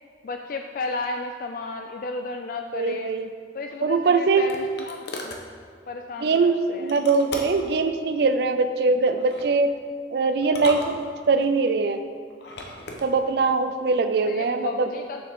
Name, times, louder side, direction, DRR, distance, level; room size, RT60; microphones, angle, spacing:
voice 1, 0.2-3.1 3.5-5.4 5.9-7.0 14.3-15.2, left 3 dB, 50° left, 4 dB, 0.3 m, -33 dB
voice 2, 2.7-3.3 3.8-4.5 6.2-9.7 10.1-12.0 13.0-14.9, right 4 dB, 60° right, 8 dB, 0.4 m, -22 dB
sound 1, 3.7-5.5 6.9-7.7 9.1-9.5 10.4-11.5 12.3-13.1, left 2 dB, 70° left, 0.9 m, -37 dB
7.3 x 6.9 x 3.6 m, 2.1 s
head